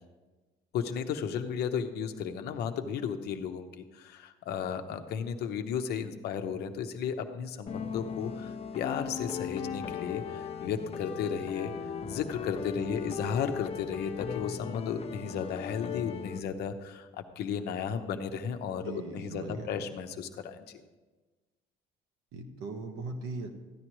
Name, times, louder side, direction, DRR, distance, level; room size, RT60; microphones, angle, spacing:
voice 1, 0.7-11.7 12.1-20.8, left 7 dB, 75° left, 7 dB, 0.9 m, -34 dB
sound 1, 7.7-16.4, left 7 dB, 35° left, 0.6 m, -38 dB
voice 2, 12.7-13.4 18.8-19.8 22.3-23.6, right 3 dB, 90° right, 4 dB, 1.3 m, -40 dB
14.0 x 9.9 x 3.1 m, 1.2 s
cardioid pair, 110°, 17 cm